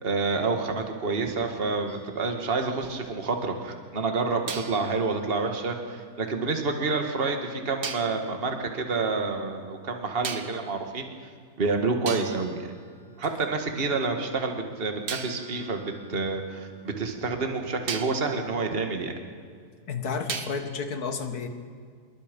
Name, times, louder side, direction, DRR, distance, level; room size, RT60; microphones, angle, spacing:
voice 1, 0.0-11.1 11.6-12.7 13.2-19.1, right 3 dB, 40° right, 4 dB, 2.0 m, -28 dB
sound 1, 1.9-3.3 4.5-6.6 7.8-8.2 10.2-10.8 11.6-11.7 12.1-13.7 15.1-17.2 17.9-18.3 20.3-20.9, right 6 dB, 80° right, 1.9 m, -40 dB
voice 2, 19.9-21.5, left 5 dB, 75° left, 7 dB, 2.2 m, -31 dB
26.5 x 22.5 x 5.3 m, 2.1 s
omnidirectional pair, 1.7 m